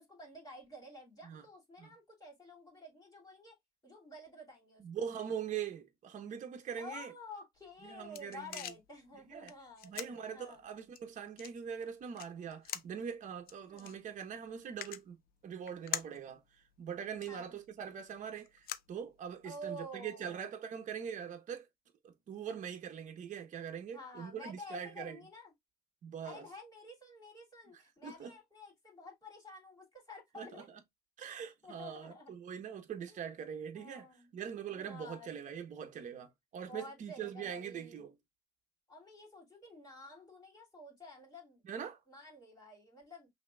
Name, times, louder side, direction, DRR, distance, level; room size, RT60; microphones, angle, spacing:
voice 1, 0.0-3.6 3.8-4.8 6.8-10.6 13.7-13.9 17.3-17.5 19.4-20.5 23.9-25.5 26.2-30.7 31.6-32.3 33.1-33.3 33.8-34.3 34.7-35.3 36.7-38.1 38.9-41.6 42.1-43.3, left 1 dB, 25° left, 2.7 m, -50 dB
voice 2, 4.8-7.1 7.8-8.7 9.3-9.5 9.8-15.2 15.4-21.7 22.0-25.2 26.0-26.5 27.7-28.3 30.3-30.8 31.2-34.1 34.3-38.1 41.6-42.0, right 8 dB, 50° right, 0.9 m, -42 dB
sound 1, 7.6-19.6, left 11 dB, 65° left, 0.5 m, -48 dB
5.7 x 2.8 x 2.3 m
cardioid pair, 110°, 17 cm